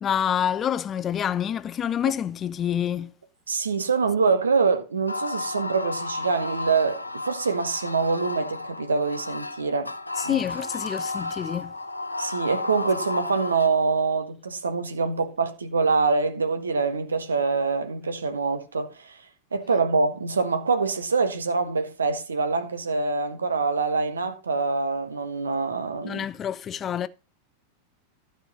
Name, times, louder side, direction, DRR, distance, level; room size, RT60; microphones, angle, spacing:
voice 1, 0.0-3.1 10.2-11.8 26.0-27.1, left 9 dB, 25° left, 0.5 m, -27 dB
voice 2, 3.5-9.9 10.2-10.4 12.2-19.2 19.5-26.2, right 4 dB, 75° right, 1.5 m, -25 dB
sound 1, 5.1-13.7, left 3 dB, 85° left, 0.7 m, -33 dB
12.5 x 5.2 x 5.3 m
figure-of-eight pair, 90°, 0 cm